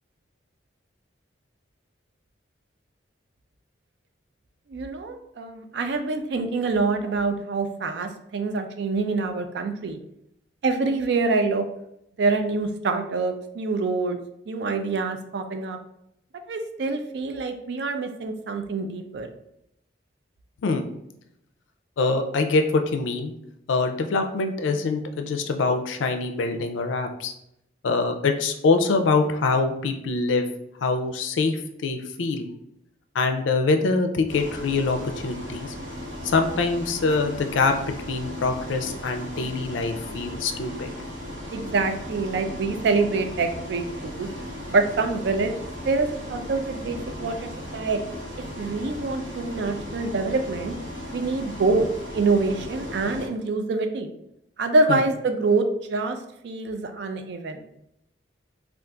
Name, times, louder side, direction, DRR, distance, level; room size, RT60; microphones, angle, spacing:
voice 1, 4.7-10.0 10.6-11.6 12.2-14.2 14.5-15.8 16.5-19.3 41.5-44.3 44.7-45.5 45.8-48.0 48.6-50.7 51.1-51.9 52.1-54.1 54.6-56.2 56.4-57.7, right 3 dB, 60° right, 6 dB, 0.3 m, -25 dB
voice 2, 22.0-23.3 23.7-27.3 27.8-30.5 30.8-32.5 33.1-35.0 35.2-35.7 36.2-37.8 38.1-40.9 54.9-55.0, left 3 dB, 85° left, 6 dB, 0.4 m, -24 dB
Bus, 34.3-53.3, equal, 90° right, 1.1 m, -36 dB
3.7 x 2.4 x 2.3 m, 0.79 s
head